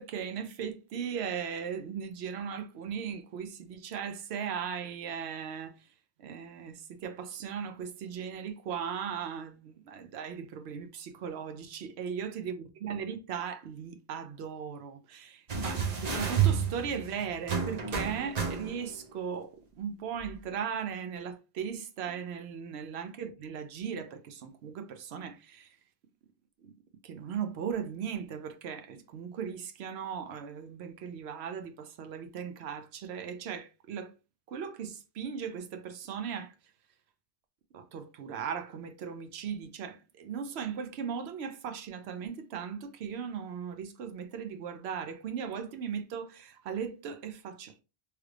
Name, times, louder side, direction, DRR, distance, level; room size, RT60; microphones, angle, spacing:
voice 1, 0.0-5.7 6.2-25.8 26.6-26.7 27.0-34.1 34.5-36.5 37.7-47.8, right 7 dB, 75° right, 0.8 m, -38 dB
sound 1, 15.5-19.0 20.2-20.3, right 7 dB, 45° right, 0.7 m, -30 dB
3.2 x 3.2 x 2.3 m
omnidirectional pair, 1.1 m